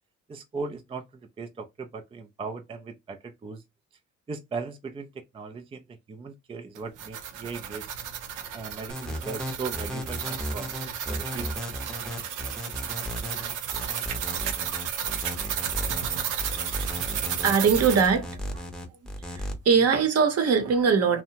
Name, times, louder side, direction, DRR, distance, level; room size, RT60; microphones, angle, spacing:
voice 1, 0.3-1.1 1.4-3.6 4.3-5.8 6.1-7.9 8.5-11.5, right 4 dB, 20° right, 0.4 m, -38 dB
sound 1, 6.7-18.1, right 9 dB, 85° right, 0.6 m, -33 dB
sound 2, 8.9-19.5, equal, ahead, 0.7 m, -35 dB
voice 2, 17.1-18.7 19.3-21.2, right 6 dB, 55° right, 0.8 m, -22 dB
2.7 x 2.1 x 2.7 m
cardioid pair, 90°, 30 cm